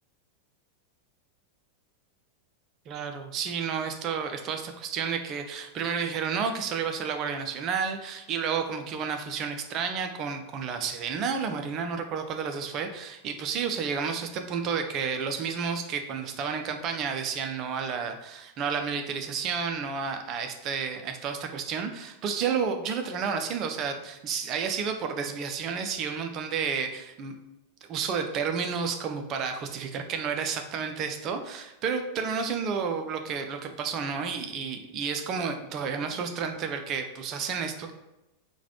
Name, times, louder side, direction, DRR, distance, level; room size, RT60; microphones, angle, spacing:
voice 1, 2.9-27.3 27.9-37.9, right 6 dB, 35° right, 6 dB, 0.4 m, -31 dB
3.9 x 2.2 x 2.9 m, 0.95 s
figure-of-eight pair, 90°, 0 cm